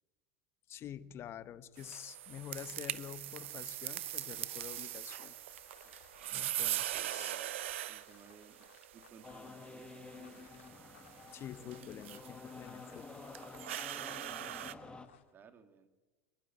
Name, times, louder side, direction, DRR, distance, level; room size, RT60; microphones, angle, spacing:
voice 1, 0.7-5.3 6.3-7.4 11.3-13.3, left 10 dB, 40° left, 14 dB, 1.2 m, -48 dB
sound 1, 1.6-15.3, left 10 dB, 85° left, 2.1 m, -65 dB
sound 2, 1.8-14.7, right 13 dB, 80° right, 0.9 m, -42 dB
voice 2, 7.0-7.6 7.9-8.7 8.9-10.5 13.7-15.9, right 6 dB, 30° right, 9 dB, 2.5 m, -60 dB
sound 3, 9.2-15.1, left 4 dB, 15° left, 1.9 m, -50 dB
26.0 x 12.0 x 8.6 m, 1.3 s
hypercardioid pair, 105°, 6 cm